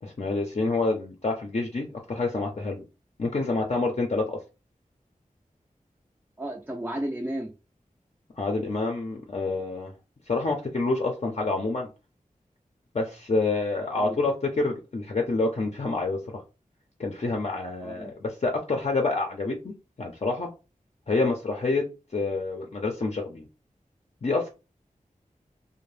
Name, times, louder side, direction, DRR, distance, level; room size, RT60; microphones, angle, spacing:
voice 1, 0.0-2.8 3.2-4.4 8.4-9.9 10.3-11.9 12.9-16.4 17.0-20.5 21.1-21.8 22.1-23.5 24.2-24.5, left 3 dB, 50° left, 1 dB, 0.5 m, -27 dB
voice 2, 6.4-7.6 13.9-14.2 17.8-18.1, right 1 dB, 10° right, 2 dB, 0.4 m, -33 dB
2.6 x 2.0 x 3.2 m, 0.30 s
wide cardioid pair, 75°, 14 cm